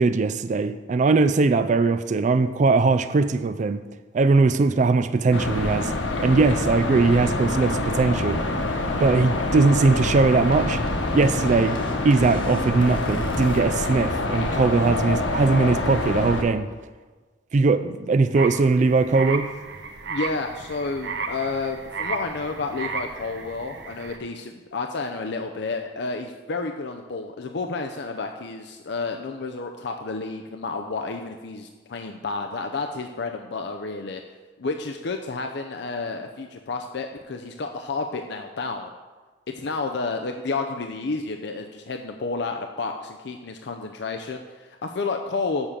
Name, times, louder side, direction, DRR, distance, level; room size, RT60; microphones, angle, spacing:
voice 1, 0.0-3.8 4.1-5.9 6.2-8.4 9.0-10.8 11.1-11.8 12.0-16.7 17.5-19.5, right 3 dB, 40° right, 0.3 m, -20 dB
sound 1, 5.3-16.4, left 2 dB, 90° left, 1.1 m, -26 dB
sound 2, 6.3-13.6, equal, 30° left, 1.3 m, -37 dB
sound 3, 18.3-24.2, right 4 dB, 65° right, 0.9 m, -34 dB
voice 2, 20.1-34.2 34.6-38.9 39.5-45.7, left 3 dB, 65° left, 0.6 m, -30 dB
7.2 x 6.6 x 7.3 m
head